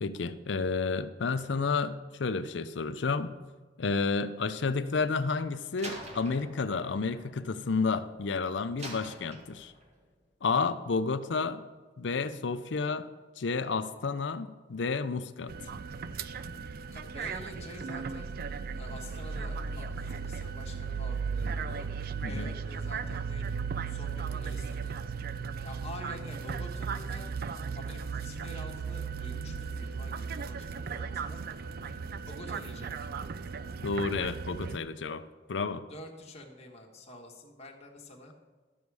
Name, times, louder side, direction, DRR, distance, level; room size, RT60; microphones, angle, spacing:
voice 1, 0.0-3.3 3.8-9.7 10.4-11.6 12.0-13.1 13.4-15.5 22.2-22.5 33.8-35.2 35.5-35.8, left 4 dB, 70° left, 13 dB, 0.5 m, -31 dB
Slam, 5.8-8.2 8.8-10.0, right 1 dB, 40° right, 1.5 m, -46 dB
sound 1, 15.5-34.8, right 5 dB, 55° right, 0.4 m, -36 dB
voice 2, 16.9-18.3 18.8-21.9 22.2-25.1 25.6-27.3 27.7-31.4 32.2-33.1 35.9-38.3, left 1 dB, 35° left, 1 dB, 1.4 m, -48 dB
11.5 x 7.1 x 4.8 m, 1.4 s
head